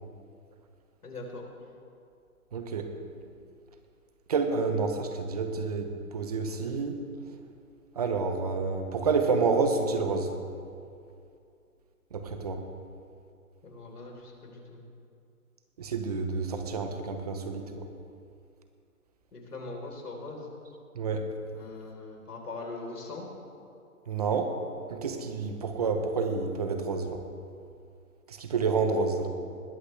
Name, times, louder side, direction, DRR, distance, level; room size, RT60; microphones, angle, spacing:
voice 1, 1.0-1.4 13.6-14.9 19.3-20.5 21.5-23.3, left 3 dB, 90° left, 0 dB, 4.2 m, -41 dB
voice 2, 2.5-2.9 4.3-7.0 8.0-10.3 12.1-12.6 15.8-17.9 20.9-21.3 24.1-24.5 24.9-27.2 28.3-29.3, right 4 dB, 25° right, 6 dB, 1.0 m, -29 dB
20.5 x 14.5 x 3.4 m, 2.5 s
hypercardioid pair, 165°, 45 cm